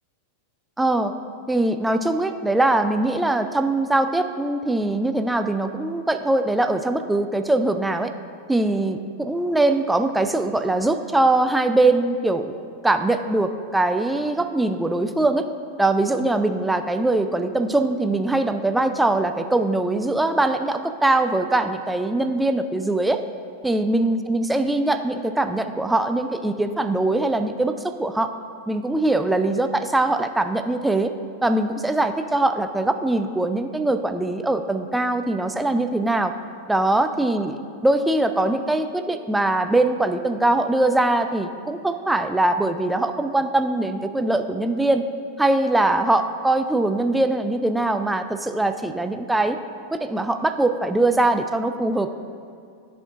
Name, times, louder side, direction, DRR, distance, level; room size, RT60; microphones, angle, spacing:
voice 1, 0.8-1.1 1.5-8.1 8.5-12.5 12.8-15.5 15.8-23.2 23.6-28.3 28.7-31.1 31.4-36.3 36.7-45.1 45.4-49.6 49.9-52.1, right 2 dB, 5° right, 8 dB, 0.3 m, -22 dB
13.0 x 4.3 x 2.6 m, 2.3 s
figure-of-eight pair, 90°, 0 cm